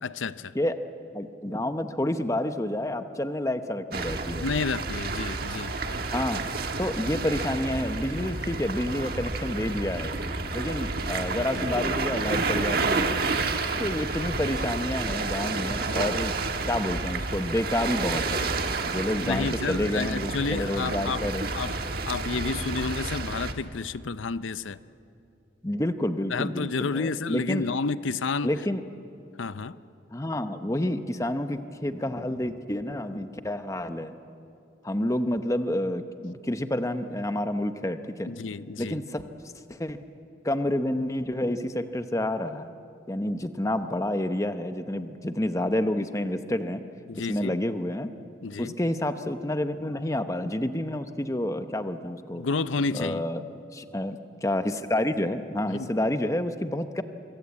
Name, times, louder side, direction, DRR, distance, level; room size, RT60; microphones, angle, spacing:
voice 1, 0.0-0.5 4.4-5.8 19.2-21.2 21.5-21.8 22.1-24.8 26.3-28.5 29.4-29.8 38.3-39.0 47.1-47.6 48.4-48.7 52.3-53.2 55.7-55.9, left 4 dB, 85° left, 15 dB, 0.6 m, -30 dB
voice 2, 1.1-4.5 6.1-6.4 6.8-10.2 10.5-13.1 13.8-16.3 16.6-18.5 18.8-21.5 25.6-27.7 28.4-28.8 30.1-34.1 34.8-38.3 38.8-39.3 39.7-40.0 40.4-42.7 43.1-46.8 47.1-48.1 48.6-52.4 52.9-53.4 53.7-57.0, left 1 dB, 15° left, 9 dB, 0.9 m, -29 dB
sound 1, 3.9-23.5, right 3 dB, 50° right, 1.4 m, -30 dB
24.5 x 24.0 x 8.4 m, 2.7 s
head